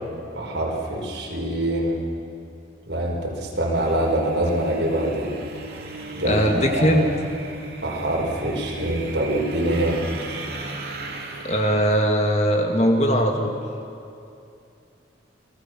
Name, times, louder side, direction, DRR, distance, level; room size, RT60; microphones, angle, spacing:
voice 1, 0.3-2.0 2.9-5.3 6.1-7.0 7.8-10.3, right 1 dB, 80° right, -1 dB, 4.9 m, -24 dB
sound 1, 3.7-11.8, right 2 dB, 55° right, 2.8 m, -37 dB
voice 2, 6.2-7.1 11.4-13.5, equal, 35° left, 3 dB, 2.2 m, -20 dB
28.5 x 19.5 x 6.3 m, 2.6 s
head